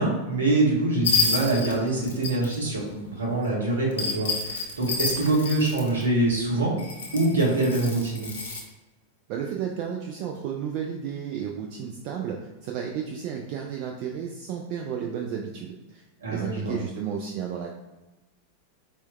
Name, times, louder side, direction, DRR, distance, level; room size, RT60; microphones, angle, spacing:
voice 1, 0.0-6.7 7.1-8.3 16.2-16.8, right 2 dB, 70° right, -2 dB, 0.8 m, -24 dB
sound 1, 1.0-2.6 3.9-6.0 6.8-8.6, left 4 dB, 65° left, 0.6 m, -28 dB
voice 2, 9.3-12.4 12.6-17.7, right 8 dB, 45° right, 0 dB, 0.3 m, -32 dB
4.3 x 2.1 x 2.2 m, 1.1 s
figure-of-eight pair, 90°, 0 cm